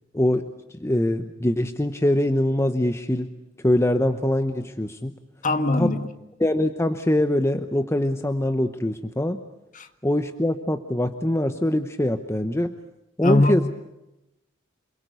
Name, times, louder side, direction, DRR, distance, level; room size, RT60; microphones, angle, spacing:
voice 1, 0.1-0.5 0.8-3.3 3.6-5.1 5.8-5.9 6.4-9.4 10.0-12.7 13.2-13.7, left 1 dB, 15° left, 0.9 m, -23 dB
voice 2, 5.4-6.1 9.7-9.9 13.2-13.5, left 2 dB, 40° left, 1.7 m, -21 dB
28.0 x 22.0 x 8.2 m
head